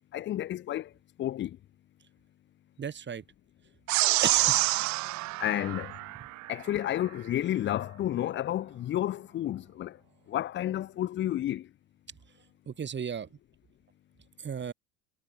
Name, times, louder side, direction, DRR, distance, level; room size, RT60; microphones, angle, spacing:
voice 1, 0.1-0.9 1.2-1.6 5.4-6.0 6.5-10.0 10.3-11.7, left 12 dB, 25° left, 0.5 m, -31 dB
voice 2, 2.8-3.2 4.2-4.6 12.7-13.3 14.4-14.7, right 7 dB, 25° right, 1.4 m, -34 dB
sound 1, 3.9-6.5, right 21 dB, 40° right, 0.5 m, -27 dB
hypercardioid pair, 75°, 44 cm